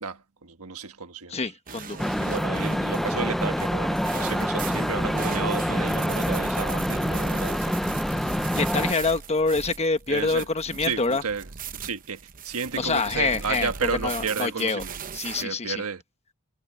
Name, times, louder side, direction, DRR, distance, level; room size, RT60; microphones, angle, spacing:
voice 1, 0.0-1.4 2.2-8.0 10.1-10.5 10.8-11.5 11.8-12.2 12.4-15.0 15.4-16.0, right 5 dB, 80° right, 1.5 m, -32 dB
voice 2, 1.3-2.1 8.2-11.2 12.8-14.8 15.1-15.8, left 3 dB, 30° left, 1.3 m, -26 dB
sound 1, 1.7-15.4, right 5 dB, 40° right, 0.8 m, -38 dB
sound 2, 2.0-8.9, equal, ahead, 0.3 m, -26 dB
head